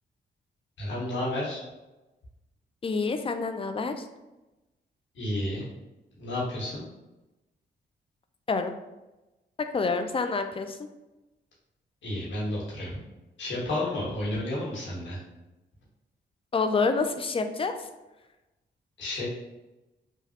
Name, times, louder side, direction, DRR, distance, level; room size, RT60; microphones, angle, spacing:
voice 1, 0.8-1.6 5.1-5.7 6.2-6.8 12.0-13.0 13.4-15.2 19.0-19.3, left 1 dB, 75° left, -6 dB, 1.3 m, -31 dB
voice 2, 2.8-4.1 8.5-8.7 9.6-10.8 16.5-17.9, left 4 dB, 30° left, 7 dB, 0.4 m, -27 dB
3.2 x 2.3 x 2.8 m, 1.0 s
supercardioid pair, 55°, 20 cm